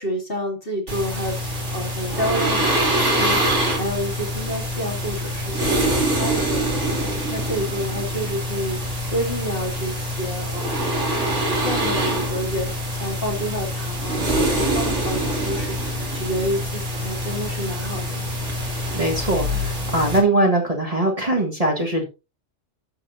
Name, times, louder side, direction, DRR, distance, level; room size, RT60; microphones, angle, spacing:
voice 1, 0.0-6.9 7.3-18.2, equal, 45° left, 2 dB, 2.7 m, -29 dB
sound 1, 0.9-20.2, equal, 65° right, 3.9 m, -25 dB
voice 2, 18.9-22.0, right 1 dB, 30° right, 0 dB, 1.8 m, -21 dB
12.5 x 7.6 x 2.7 m, 0.29 s
omnidirectional pair, 1.3 m